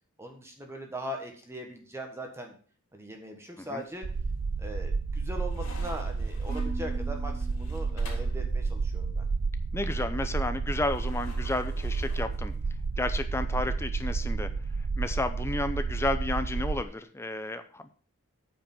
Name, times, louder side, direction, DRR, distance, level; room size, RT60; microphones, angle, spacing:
voice 1, 0.2-2.5 2.9-4.1 4.6-9.2 13.6-13.7, equal, 10° right, 3 dB, 1.4 m, -40 dB
sound 1, 3.7-4.3 4.7-8.4 10.9-12.9, left 3 dB, 65° left, 3.5 m, -50 dB
sound 2, 4.0-16.8, right 4 dB, 60° right, 0.5 m, -31 dB
Marimba xylophone / Wood, 6.5-8.7, equal, 35° right, 1.1 m, -43 dB
voice 2, 9.7-12.5 13.0-14.5 15.0-17.9, left 2 dB, 10° left, 10 dB, 0.6 m, -32 dB
9.1 x 5.2 x 7.2 m, 0.42 s
head